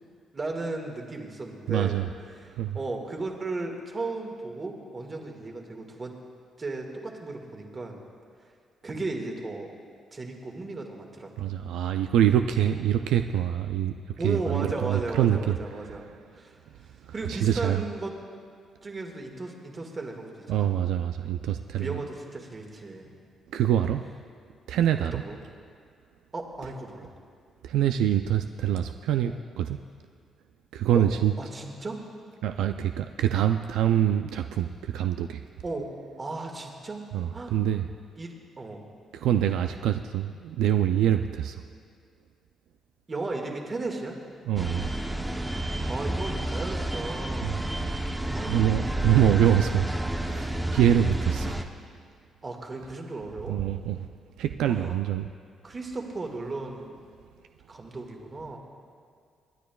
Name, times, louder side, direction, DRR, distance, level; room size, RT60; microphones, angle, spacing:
voice 1, 0.3-2.0 2.7-6.1 6.6-8.0 8.8-9.7 10.1-11.5 14.2-16.1 16.3-16.6 17.1-18.1 18.8-20.7 21.7-23.1 25.1-25.4 26.3-27.1 29.2-29.4 30.9-31.0 31.4-32.0 35.6-35.9 36.2-37.0 37.3-37.5 38.2-38.8 43.1-44.1 45.9-47.6 48.3-48.7 52.4-53.6 54.6-55.0 55.6-56.9 57.7-58.6, right 3 dB, 35° right, 2 dB, 1.8 m, -35 dB
voice 2, 1.7-2.1 2.5-2.8 11.4-16.0 17.0-17.8 20.5-22.0 23.5-24.0 24.7-25.2 27.6-29.8 30.7-31.3 32.4-35.4 37.1-37.9 39.1-41.6 44.5-44.9 47.4-47.6 48.5-49.9 50.2-51.6 53.5-54.0 54.4-55.3, right 10 dB, 85° right, 7 dB, 0.3 m, -25 dB
sound 1, 44.6-51.6, right 1 dB, 10° right, 0.8 m, -30 dB
26.0 x 10.0 x 2.3 m, 2.2 s
cardioid pair, 90°, 0 cm